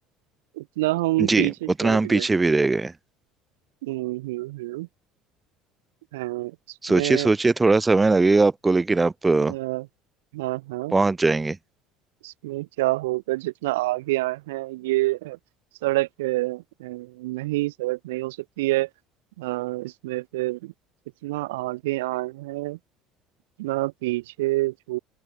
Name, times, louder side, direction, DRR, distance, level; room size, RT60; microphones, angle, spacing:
voice 1, 0.6-1.5 1.8-2.3 3.8-4.9 6.1-6.5 6.9-7.3 9.5-9.8 10.3-10.9 12.2-15.4 15.8-18.9 19.4-20.7 21.2-22.8 23.6-25.0, right 19 dB, 80° right, 0.3 m, -27 dB
voice 2, 1.2-1.5 1.8-2.9 6.8-9.5 10.9-11.6, right 3 dB, 20° right, 0.5 m, -20 dB
open air
hypercardioid pair, 70°, 0 cm